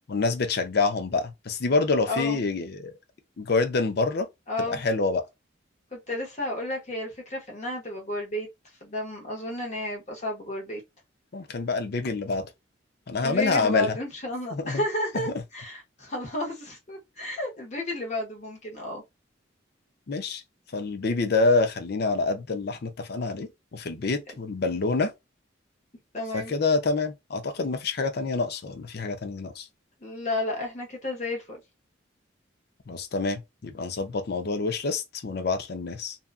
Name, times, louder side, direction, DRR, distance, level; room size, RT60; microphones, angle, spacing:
voice 1, 0.1-2.9 3.4-4.3 4.7-5.2 11.3-12.5 13.1-14.0 14.5-14.8 15.3-15.4 20.1-20.4 20.7-25.1 26.3-29.7 32.9-36.2, left 3 dB, 55° left, 0.5 m, -27 dB
voice 2, 2.1-2.4 4.5-4.8 5.9-8.5 8.8-10.8 13.2-19.0 26.1-26.6 30.0-31.6, left 1 dB, 35° left, 0.9 m, -32 dB
2.7 x 2.3 x 2.4 m
head